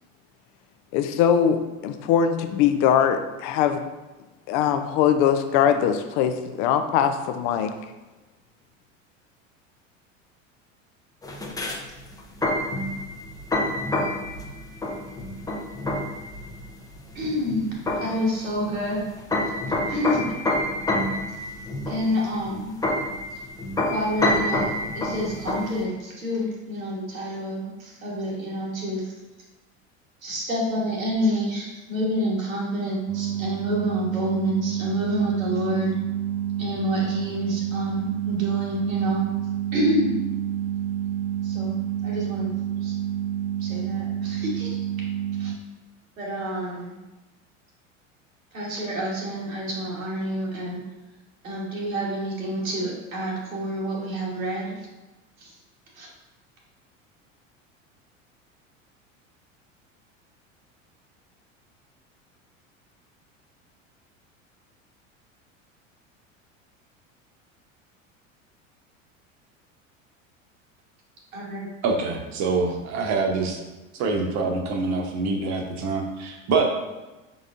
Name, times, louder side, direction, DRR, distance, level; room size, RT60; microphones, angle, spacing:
voice 1, 0.9-3.8 4.5-7.7, left 8 dB, 45° left, 8 dB, 0.5 m, -21 dB
sound 1, 11.2-25.8, left 1 dB, 10° left, 0.6 m, -28 dB
voice 2, 17.1-17.7 18.0-19.0 19.9-20.3 21.9-22.7 23.9-29.0 30.2-35.9 36.6-39.3 39.7-40.1 41.4-42.5 42.8-42.9 43.6-44.8 45.4-45.5 46.2-47.0 48.5-50.8 51.4-54.8 55.4-55.5 56.0-56.1 71.3-71.7, equal, 85° right, -3 dB, 1.4 m, -28 dB
sound 2, 33.1-45.6, right 11 dB, 60° right, 0.6 m, -28 dB
voice 3, 71.8-73.6 74.0-76.6, right 4 dB, 45° right, 3 dB, 1.0 m, -25 dB
5.3 x 3.9 x 2.5 m, 1.1 s
hypercardioid pair, 75°, 40 cm